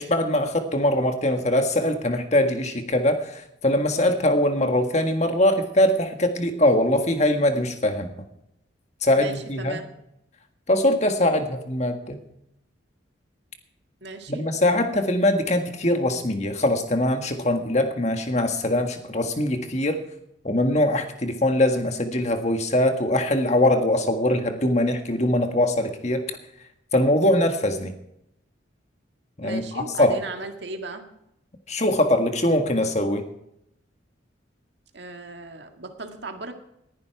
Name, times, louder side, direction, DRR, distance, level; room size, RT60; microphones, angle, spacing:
voice 1, 0.0-8.1 9.0-9.8 10.7-12.2 14.3-20.0 20.4-26.2 26.9-27.9 29.4-30.2 31.7-33.2, left 1 dB, 35° left, 6 dB, 1.6 m, -22 dB
voice 2, 9.2-9.9 14.0-14.5 29.4-31.0 34.9-36.5, right 2 dB, 60° right, 5 dB, 1.8 m, -36 dB
19.5 x 10.5 x 4.7 m, 0.81 s
head